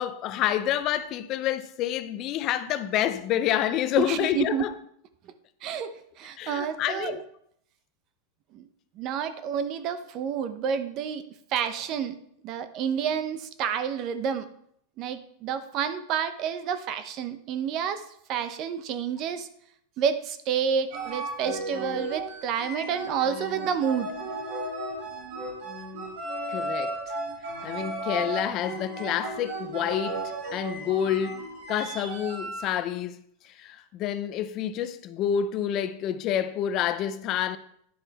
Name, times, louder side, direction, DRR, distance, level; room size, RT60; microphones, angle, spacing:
voice 1, 0.0-4.7 6.4-7.2 26.5-26.9 27.6-30.2 30.5-31.4 31.7-33.2 33.4-37.6, left 10 dB, 40° left, 0.5 m, -28 dB
voice 2, 4.0-4.7 5.6-7.2 8.5-8.7 9.0-12.2 12.4-14.5 15.0-19.5 20.0-24.2, right 7 dB, 40° right, 0.7 m, -29 dB
sound 1, 20.9-32.7, right 2 dB, 75° right, 3.7 m, -34 dB
10.5 x 5.4 x 4.2 m
supercardioid pair, 140°, 0 cm